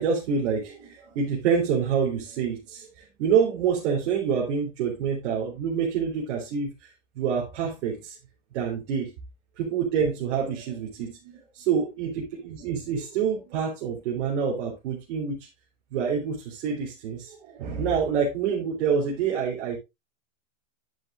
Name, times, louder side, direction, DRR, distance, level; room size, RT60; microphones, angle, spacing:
voice 1, 0.0-6.7 7.2-8.1 8.5-9.1 9.6-11.2 11.5-15.4 15.9-19.8, right 6 dB, 60° right, -3 dB, 3.6 m, -27 dB
10.5 x 8.2 x 2.5 m, 0.24 s
hypercardioid pair, 120°, 37 cm